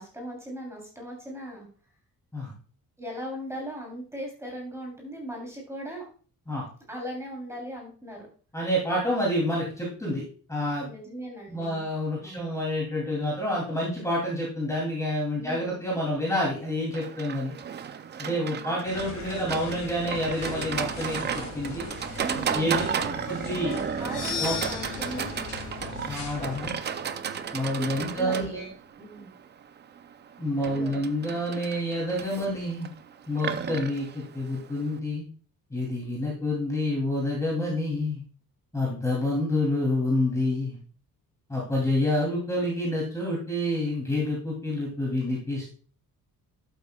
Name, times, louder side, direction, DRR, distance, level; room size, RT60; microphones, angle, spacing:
voice 1, 0.0-1.7 3.0-6.0 6.9-8.3 10.8-11.8 12.2-12.5 15.3-15.8 22.2-23.2 23.5-25.3 27.9-28.7 29.0-29.3 30.6-31.0, equal, 10° right, -1 dB, 3.2 m, -38 dB
voice 2, 8.5-10.2 10.5-10.9 11.5-17.5 18.2-21.9 22.5-22.8 23.3-23.7 24.4-24.7 26.1-26.7 27.5-28.7 30.4-32.9 33.3-35.3 35.7-38.2 38.7-40.8 41.5-45.8, left 1 dB, 10° left, -4 dB, 2.8 m, -28 dB
Livestock farm animals working animals, 16.9-35.0, right 7 dB, 30° right, 0.4 m, -34 dB
sound 1, 18.8-26.7, left 4 dB, 50° left, 2.8 m, -40 dB
sound 2, 24.0-28.3, left 5 dB, 65° left, 3.5 m, -38 dB
11.5 x 8.3 x 2.3 m, 0.41 s
cardioid pair, 175°, 35 cm